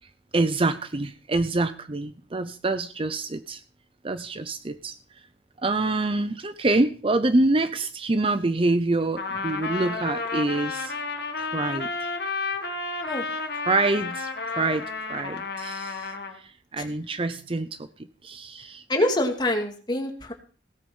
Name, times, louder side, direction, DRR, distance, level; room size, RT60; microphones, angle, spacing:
voice 1, 0.3-3.6 4.0-5.0 5.6-10.9 11.4-12.1 13.7-14.3 14.5-17.9 18.2-18.8, right 2 dB, 30° right, 12 dB, 0.6 m, -26 dB
Trumpet, 9.2-16.4, left 3 dB, 60° left, 2.2 m, -31 dB
voice 2, 18.9-20.3, left 1 dB, 25° left, 3 dB, 2.4 m, -25 dB
17.5 x 8.2 x 5.6 m, 0.42 s
head